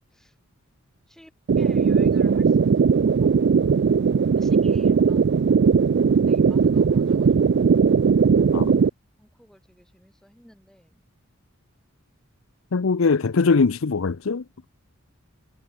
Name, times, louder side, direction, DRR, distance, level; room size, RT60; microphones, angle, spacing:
voice 1, 1.1-5.4 6.2-7.8 9.2-11.0, equal, ahead, 7.8 m, -52 dB
sound 1, 1.5-8.9, right 6 dB, 55° right, 0.4 m, -18 dB
voice 2, 12.7-14.7, left 4 dB, 75° left, 0.6 m, -22 dB
head